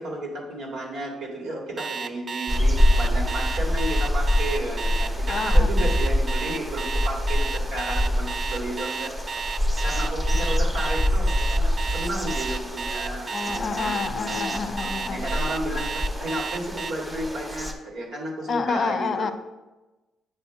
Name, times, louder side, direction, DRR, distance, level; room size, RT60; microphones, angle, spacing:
voice 1, 0.0-9.2 9.8-14.5 15.1-19.3, right 1 dB, 90° right, -2 dB, 1.9 m, -33 dB
Alarm, 1.8-16.9, right 5 dB, 45° right, 0.4 m, -32 dB
sound 1, 2.5-17.7, left 1 dB, 15° right, 1.0 m, -25 dB
voice 2, 5.3-5.7 13.3-15.2 18.5-19.3, left 5 dB, 50° left, 10 dB, 0.5 m, -28 dB
7.8 x 2.8 x 5.7 m, 1.1 s
cardioid pair, 90°, 0 cm